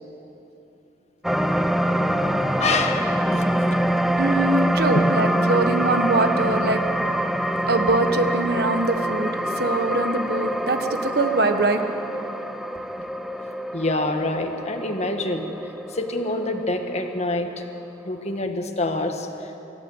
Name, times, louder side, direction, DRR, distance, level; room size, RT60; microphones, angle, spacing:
sound 1, 1.2-17.7 18.2-18.3, right 1 dB, ahead, 0.5 m, -25 dB
voice 1, 2.1-3.5 4.9-5.0 13.0-13.1 13.7-15.5 15.9-17.6 18.0-19.6, left 2 dB, 40° left, 5 dB, 1.6 m, -26 dB
voice 2, 4.2-6.8 7.7-11.8, right 2 dB, 65° right, 7 dB, 1.4 m, -23 dB
26.5 x 13.0 x 8.0 m, 2.9 s
head